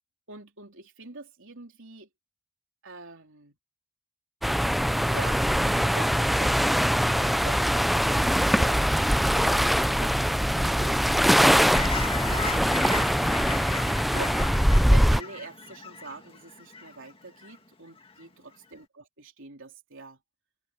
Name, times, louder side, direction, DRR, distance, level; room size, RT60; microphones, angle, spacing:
voice 1, 0.3-2.1 2.8-3.6 5.1-8.8 9.3-11.8 12.3-13.1 14.0-20.2, right 3 dB, 55° right, 3.9 m, -44 dB
sound 1, 4.4-15.2, equal, ahead, 0.3 m, -22 dB
Fowl / Chirp tweet, 11.7-17.6 18.0-18.2, left 4 dB, 25° left, 2.2 m, -37 dB
head